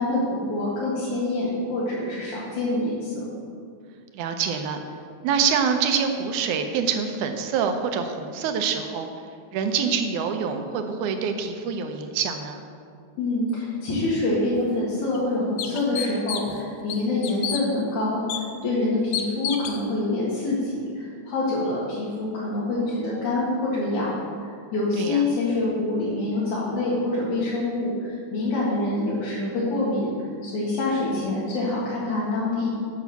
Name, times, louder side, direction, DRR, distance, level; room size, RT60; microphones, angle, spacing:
voice 1, 0.0-3.3 13.2-30.1 30.4-32.8, left 2 dB, 70° left, -9 dB, 3.4 m, -26 dB
voice 2, 4.1-4.8 5.2-9.1 9.5-12.6 25.0-25.2, right 6 dB, 80° right, 6 dB, 2.3 m, -25 dB
sound 1, 14.5-14.6 15.1-15.2 15.6-16.6 16.9-17.6 18.3-18.4 19.1-19.8, left 9 dB, 90° left, 1.2 m, -29 dB
8.8 x 6.4 x 7.1 m, 2.2 s
omnidirectional pair, 3.5 m